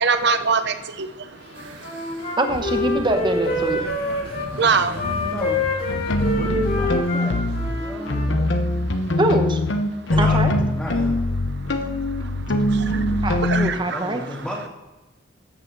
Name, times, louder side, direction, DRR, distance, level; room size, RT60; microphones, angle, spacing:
voice 1, 0.0-1.1 4.6-5.0 13.4-14.0, right 5 dB, 65° right, 10 dB, 0.8 m, -21 dB
Wind instrument woodwind instrument, 1.5-4.5 4.9-8.3, left 2 dB, 55° left, 2.3 m, -27 dB
sound 1, 1.6-7.5, right 1 dB, 85° right, 1.5 m, -38 dB
voice 2, 2.4-3.8 9.2-9.6 10.2-10.5 13.2-14.2, right 1 dB, 25° right, 6 dB, 1.2 m, -23 dB
voice 3, 3.5-5.6 6.2-8.5 10.1-11.2 13.7-14.7, equal, 5° left, -7 dB, 2.1 m, -34 dB
sound 2, 5.0-5.3 5.9-7.7 8.1-13.7, left 1 dB, 75° left, 1.1 m, -22 dB
13.0 x 8.2 x 4.1 m, 1.1 s
head